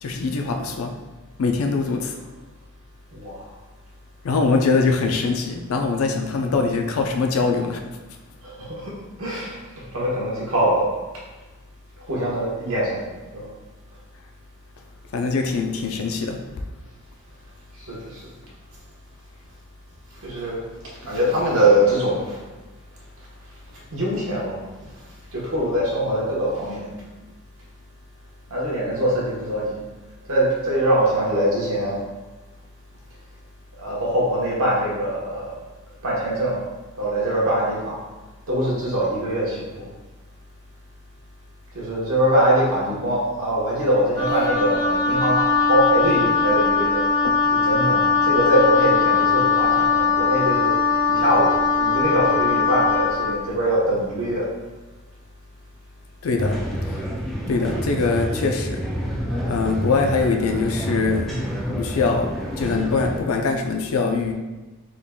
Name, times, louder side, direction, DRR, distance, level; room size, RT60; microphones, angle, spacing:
voice 1, 0.0-0.9 1.4-2.2 4.2-7.8 15.1-16.4 47.2-47.4 56.2-57.0 57.5-58.8 59.4-61.3 61.7-64.3, left 4 dB, 75° left, 4 dB, 0.4 m, -23 dB
voice 2, 8.4-9.6 9.9-10.9 12.1-13.1 13.3-13.5 17.9-18.2 20.2-20.6 21.0-22.4 23.9-24.6 25.3-26.9 28.5-29.8 30.3-32.0 33.8-35.5 36.0-36.6 37.0-38.0 38.5-39.8 41.7-47.0 47.5-50.8 51.1-54.5, right 1 dB, 80° right, -5 dB, 1.2 m, -22 dB
Wind instrument woodwind instrument, 44.1-53.3, left 5 dB, 25° left, 1.3 m, -20 dB
sound 1, 56.4-63.2, equal, ahead, 0.4 m, -28 dB
3.8 x 3.6 x 2.3 m, 1.2 s
head